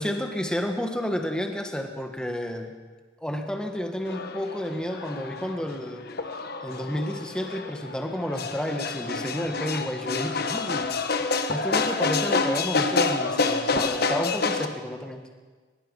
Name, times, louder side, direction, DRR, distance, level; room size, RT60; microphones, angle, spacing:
voice 1, 0.0-2.7 3.2-6.1 6.6-15.3, equal, 5° left, 4 dB, 1.5 m, -31 dB
sound 1, 4.1-14.7, left 4 dB, 55° left, 1.3 m, -28 dB
23.5 x 21.0 x 5.5 m, 1.4 s
head